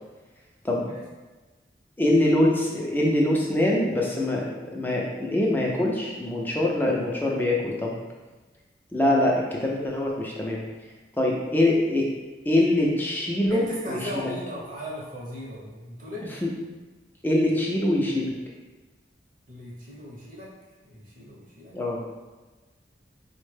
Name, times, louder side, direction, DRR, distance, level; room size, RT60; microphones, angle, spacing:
voice 1, 2.0-8.0 8.9-10.6 11.2-12.1 12.5-14.1 16.4-16.5 17.2-18.3 21.7-22.0, left 1 dB, 10° left, -2 dB, 0.4 m, -23 dB
voice 2, 13.5-16.3 19.5-20.5 20.9-21.8, equal, 45° right, -5 dB, 0.8 m, -37 dB
4.3 x 2.1 x 3.2 m, 1.2 s
head